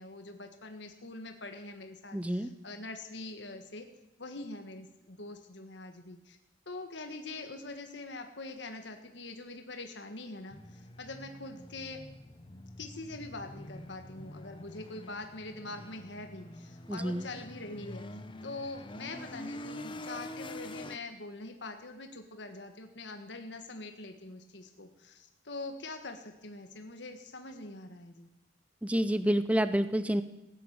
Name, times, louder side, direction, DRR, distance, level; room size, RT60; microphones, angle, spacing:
voice 1, 0.0-3.9 4.2-6.4 6.6-12.0 12.8-18.0 18.4-28.3, left 2 dB, 70° left, 5 dB, 1.6 m, -44 dB
voice 2, 2.1-2.5 16.9-17.3 28.8-30.2, equal, 5° right, 12 dB, 0.6 m, -28 dB
sound 1, 10.5-21.0, left 1 dB, 25° left, 0.9 m, -46 dB
16.5 x 9.9 x 8.7 m, 0.93 s
head